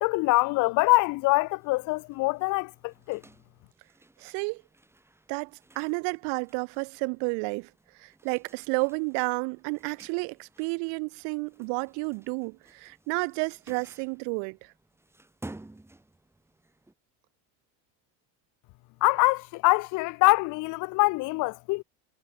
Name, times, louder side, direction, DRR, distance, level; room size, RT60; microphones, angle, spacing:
voice 1, 0.0-3.2 19.0-21.8, left 23 dB, 50° left, 0.4 m, -24 dB
sound 1, 0.8-16.9, right 2 dB, 5° right, 7.0 m, -53 dB
voice 2, 4.2-4.6 5.3-7.7 8.0-14.7, right 37 dB, 75° right, 0.9 m, -31 dB
cardioid pair, 165°, 42 cm